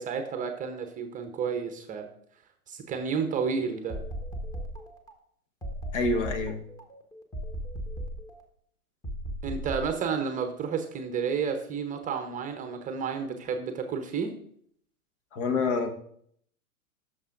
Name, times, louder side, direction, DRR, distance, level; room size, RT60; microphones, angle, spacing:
voice 1, 0.0-2.1 2.7-4.0 9.4-14.3, right 6 dB, 20° right, 0.8 m, -31 dB
sound 1, 3.2-5.1 5.6-8.4 9.0-9.9, equal, 10° left, 1.2 m, -37 dB
voice 2, 5.9-6.6 15.3-15.9, left 3 dB, 55° left, 1.4 m, -27 dB
14.5 x 6.7 x 2.5 m
hypercardioid pair, 110°, 45 cm